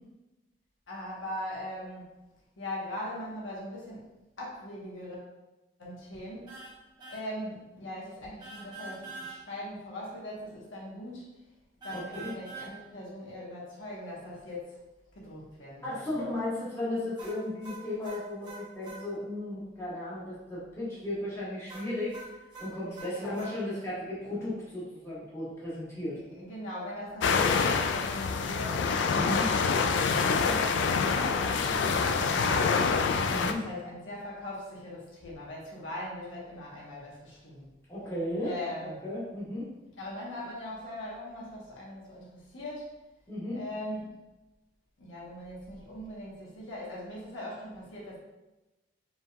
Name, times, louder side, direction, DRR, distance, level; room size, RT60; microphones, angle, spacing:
voice 1, 0.9-2.1 2.6-4.1 4.4-5.2 5.8-6.5 7.1-11.5 11.8-14.8 15.1-16.2 23.1-23.4 26.1-29.6 30.1-33.0 33.4-37.7 38.4-39.0 40.0-43.0 43.5-44.2 45.0-48.2, left 1 dB, 85° left, -5 dB, 1.1 m, -40 dB
sound 1, 6.5-6.7 7.0-7.2 8.4-9.4 11.8-12.7 17.2-19.0 21.7-23.5, right 3 dB, 20° right, 1.0 m, -44 dB
voice 2, 11.9-12.3 15.8-22.2 22.6-26.2 29.1-29.5 33.3-33.6 37.9-38.6 38.8-39.7 43.3-43.6, left 1 dB, 15° left, -10 dB, 1.5 m, -35 dB
sound 2, 27.2-33.5, left 5 dB, 70° left, 0.3 m, -26 dB
5.2 x 3.4 x 2.3 m, 1.0 s
head